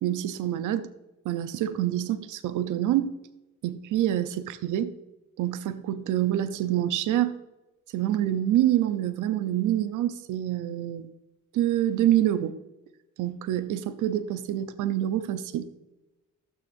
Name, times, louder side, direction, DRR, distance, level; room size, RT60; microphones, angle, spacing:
voice 1, 0.0-0.9 1.2-3.2 3.6-4.9 5.4-7.3 7.9-11.1 11.5-12.6 13.2-15.7, right 12 dB, 85° right, 0.7 m, -26 dB
12.5 x 8.1 x 2.6 m
cardioid pair, 90°, 30 cm